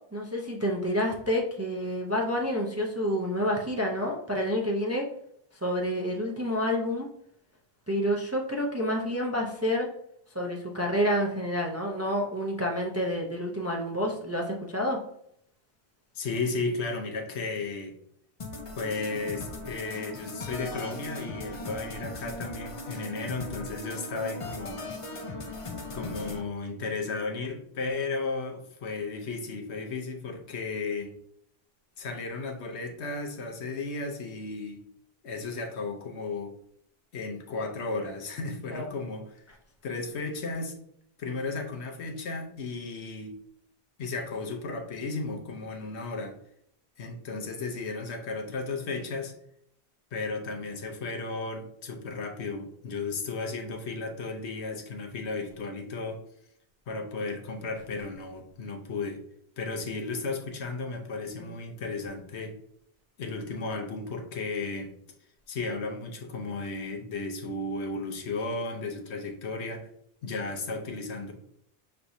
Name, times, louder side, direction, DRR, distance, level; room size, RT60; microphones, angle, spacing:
voice 1, 0.1-5.1 5.5-7.1 7.9-9.9 10.3-15.0 38.7-38.9 39.5-39.6 58.0-58.1 61.4-61.6, equal, 20° right, 0 dB, 0.4 m, -29 dB
voice 2, 16.1-18.0 18.7-24.9 25.9-31.1 32.0-34.8 35.2-36.5 37.1-39.4 39.8-40.8 41.2-43.4 44.0-46.4 47.0-49.3 50.1-56.2 56.9-59.2 59.6-62.6 63.2-64.9 65.5-69.9 70.2-71.3, left 3 dB, 80° left, 3 dB, 1.1 m, -34 dB
sound 1, 18.4-26.4, left 2 dB, 40° left, 0.5 m, -38 dB
5.8 x 3.3 x 2.6 m, 0.71 s
omnidirectional pair, 1.1 m